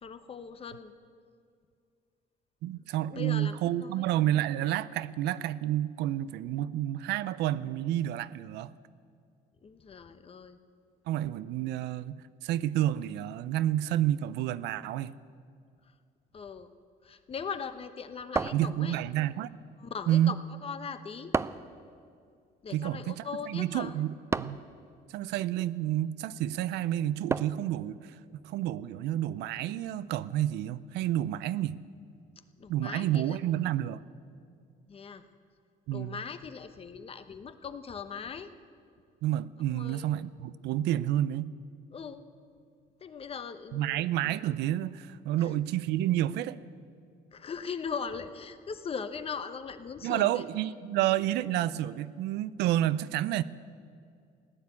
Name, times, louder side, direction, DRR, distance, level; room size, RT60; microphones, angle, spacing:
voice 1, 0.0-0.9 3.1-4.1 9.6-10.6 16.3-16.7 17.0-19.0 19.8-21.3 22.6-24.0 32.6-33.4 34.9-35.2 35.9-38.5 39.7-40.1 41.9-42.2 43.0-44.0 47.3-50.4, left 6 dB, 35° left, 11 dB, 0.9 m, -39 dB
voice 2, 2.6-8.7 11.1-15.1 18.4-19.5 20.1-20.4 22.7-24.6 25.1-28.2 28.4-31.8 32.7-34.0 35.9-36.2 39.2-41.5 43.7-46.6 50.0-53.4, right 13 dB, 80° right, 17 dB, 0.5 m, -30 dB
sound 1, 18.4-19.2 21.3-21.8 24.3-24.7 27.3-27.7, right 4 dB, 15° right, 0.4 m, -32 dB
16.0 x 9.8 x 8.3 m, 2.3 s
cardioid pair, 110°, 17 cm